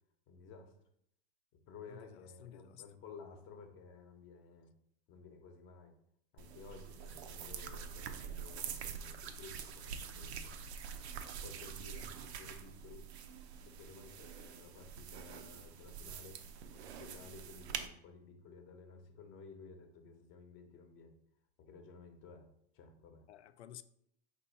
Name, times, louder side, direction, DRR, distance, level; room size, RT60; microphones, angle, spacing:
voice 1, 0.3-0.7 1.7-4.7 5.1-5.9 6.3-10.8 11.4-13.0 13.6-16.4 16.7-21.2 21.6-22.5 22.7-23.2, left 4 dB, 35° left, 0.8 m, -54 dB
voice 2, 1.9-2.8 23.3-23.8, left 12 dB, 85° left, 0.5 m, -53 dB
sound 1, 6.4-17.9, right 7 dB, 85° right, 0.6 m, -46 dB
4.6 x 2.6 x 3.9 m
supercardioid pair, 130°, 32 cm